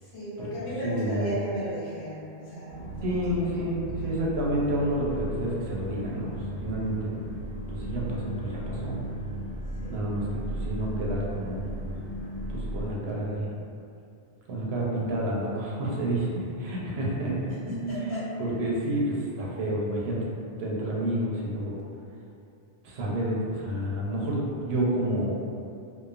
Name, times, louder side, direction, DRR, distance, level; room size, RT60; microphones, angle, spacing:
voice 1, 0.0-3.2 4.0-4.1 9.8-10.0 17.7-18.3, right 1 dB, 75° left, -10 dB, 1.2 m, -34 dB
voice 2, 0.8-1.3 3.0-6.3 6.6-7.1 7.7-9.0 9.9-11.7 12.5-13.5 14.5-17.7 18.4-20.3 20.6-21.8 22.8-25.4, right 1 dB, 80° right, -4 dB, 0.8 m, -29 dB
sound 1, 2.7-12.8, right 1 dB, 25° left, 1.4 m, -35 dB
3.0 x 2.0 x 2.4 m, 2.5 s
omnidirectional pair, 1.1 m